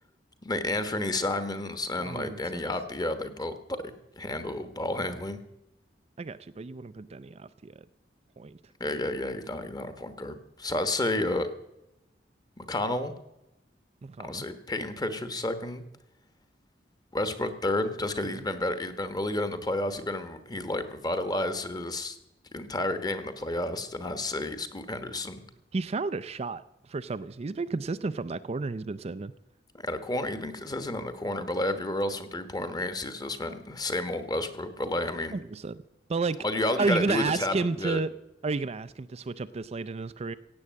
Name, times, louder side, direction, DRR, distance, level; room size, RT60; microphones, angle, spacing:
voice 1, 0.4-3.6 4.2-5.4 8.8-11.5 12.6-13.1 14.2-15.8 17.1-22.2 22.5-25.4 29.7-35.4 36.4-38.0, left 1 dB, 20° left, 10 dB, 1.2 m, -31 dB
voice 2, 2.0-2.6 6.2-7.8 8.4-8.6 14.0-14.4 18.2-18.4 25.7-29.3 35.3-35.8 36.1-36.4 36.8-38.2 38.4-40.4, right 3 dB, 35° right, 13 dB, 0.4 m, -32 dB
16.5 x 8.5 x 7.5 m, 0.91 s
head